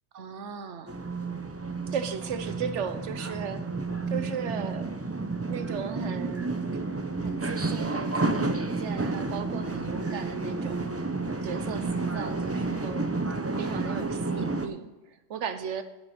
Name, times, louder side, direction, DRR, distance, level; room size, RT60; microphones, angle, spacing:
voice 1, 0.1-0.9 1.9-3.6 4.1-4.9 5.5-6.8 7.2-10.8 11.4-13.1 13.6-15.8, right 6 dB, 75° right, 10 dB, 1.1 m, -36 dB
sound 1, 0.9-14.7, right 3 dB, 20° right, 0.4 m, -31 dB
11.0 x 9.6 x 4.2 m, 1.1 s
omnidirectional pair, 1.3 m